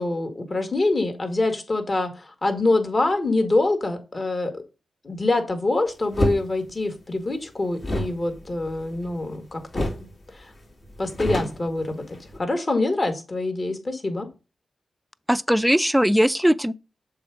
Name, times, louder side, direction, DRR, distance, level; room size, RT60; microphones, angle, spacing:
voice 1, 0.0-4.6 5.0-10.1 10.3-10.5 11.0-14.3, left 2 dB, 40° left, 1.9 m, -25 dB
sound 1, 6.1-6.4 7.8-9.4 9.7-10.1 10.4-10.5 10.8-12.4, equal, 60° left, 2.4 m, -28 dB
voice 2, 15.3-16.7, equal, 5° right, 0.5 m, -19 dB
6.9 x 3.6 x 4.8 m
cardioid pair, 55°, 0 cm